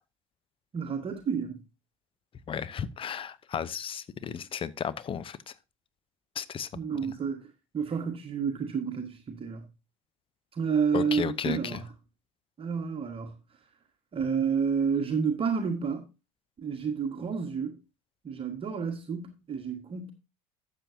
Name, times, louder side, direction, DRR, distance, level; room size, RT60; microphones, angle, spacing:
voice 1, 0.7-1.6 6.7-9.7 10.5-11.9 12.6-13.3 14.1-16.0 16.6-17.8 18.2-20.1, right 6 dB, 30° right, 1.5 m, -30 dB
voice 2, 2.5-5.4 6.4-6.7 10.9-11.8, left 8 dB, 30° left, 0.7 m, -33 dB
12.0 x 7.5 x 2.7 m
figure-of-eight pair, 65°, 18 cm